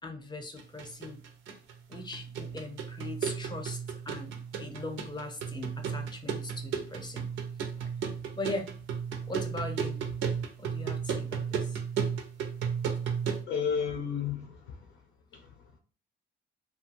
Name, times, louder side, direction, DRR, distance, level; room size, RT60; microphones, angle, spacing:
voice 1, 0.0-1.2 1.9-7.3 7.8-7.9 8.3-8.7 9.3-10.0 10.6-11.8, left 2 dB, 20° left, 0.6 m, -40 dB
sound 1, 0.6-13.4, right 7 dB, 90° right, 0.5 m, -34 dB
voice 2, 13.5-15.0 15.3-15.8, left 7 dB, 90° left, 0.6 m, -33 dB
2.6 x 2.3 x 2.9 m
cardioid pair, 90°, 20 cm